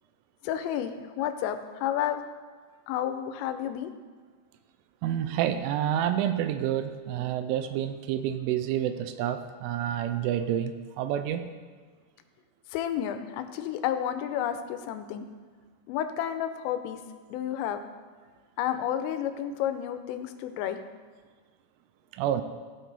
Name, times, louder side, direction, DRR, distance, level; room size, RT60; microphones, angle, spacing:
voice 1, 0.4-2.2 2.9-3.9 12.7-15.3 15.9-17.0 17.3-17.8 18.6-20.8, left 10 dB, 85° left, 9 dB, 3.3 m, -31 dB
voice 2, 5.0-11.5 22.1-22.4, right 10 dB, 85° right, 10 dB, 3.0 m, -28 dB
16.5 x 6.1 x 4.0 m, 1.5 s
omnidirectional pair, 5.7 m